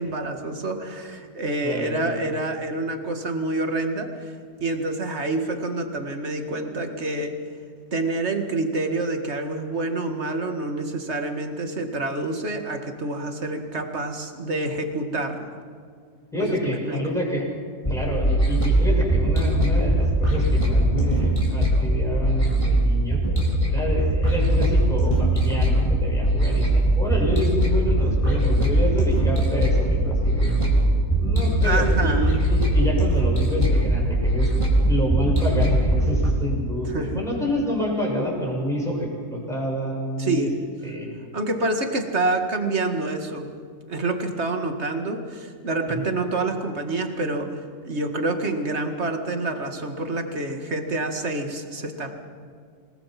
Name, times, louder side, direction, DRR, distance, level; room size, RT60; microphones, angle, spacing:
voice 1, 0.0-4.3 4.6-7.3 7.9-15.6 16.5-17.1 31.6-32.3 36.9-37.2 40.2-40.5 41.3-43.5 43.9-52.1, right 2 dB, 40° right, 5 dB, 2.2 m, -27 dB
voice 2, 1.6-2.2 16.3-17.5 17.9-23.2 23.7-30.7 31.1-34.5 34.9-40.5 40.8-41.1 45.9-46.0, equal, ahead, -3 dB, 6.4 m, -28 dB
sound 1, 17.8-36.3, right 1 dB, 20° left, 4.2 m, -21 dB
28.0 x 19.5 x 6.0 m, 2.1 s
omnidirectional pair, 1.8 m